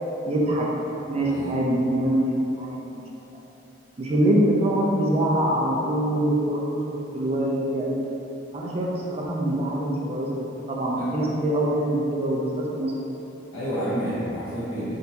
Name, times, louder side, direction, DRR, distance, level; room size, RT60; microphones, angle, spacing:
voice 1, 0.2-0.7 1.1-3.0 4.0-6.8 7.1-8.0 8.5-12.9, right 1 dB, 30° right, -3 dB, 0.4 m, -24 dB
voice 2, 1.1-1.5 10.9-11.1 13.5-15.0, equal, 75° left, -14 dB, 1.1 m, -30 dB
3.6 x 2.6 x 2.8 m, 2.9 s
head